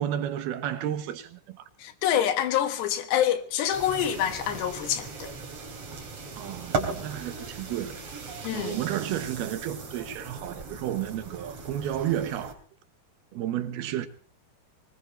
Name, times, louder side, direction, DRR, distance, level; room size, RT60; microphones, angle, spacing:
voice 1, 0.0-1.7 6.4-8.2 8.5-12.6 13.3-14.1, right 11 dB, 75° right, 2.9 m, -32 dB
voice 2, 1.8-5.3 8.4-8.7, left 10 dB, 85° left, 3.7 m, -26 dB
sound 1, 3.7-12.5, right 4 dB, 40° right, 3.9 m, -38 dB
23.5 x 20.0 x 3.1 m
omnidirectional pair, 4.8 m